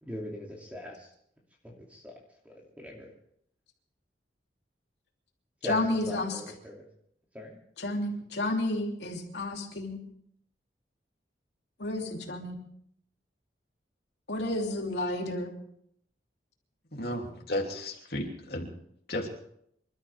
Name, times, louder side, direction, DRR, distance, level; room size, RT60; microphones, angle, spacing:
voice 1, 0.0-1.1 1.6-2.1 2.4-3.1 5.6-5.8 6.1-6.8 7.3-7.6, left 1 dB, 10° right, -2 dB, 2.7 m, -40 dB
voice 2, 5.6-6.4 7.8-10.0 11.8-12.6 14.3-15.5, left 1 dB, 75° left, 1 dB, 2.9 m, -31 dB
voice 3, 16.9-18.7 19.1-19.3, left 1 dB, 55° left, 0 dB, 3.1 m, -33 dB
26.5 x 13.0 x 3.6 m, 0.70 s
head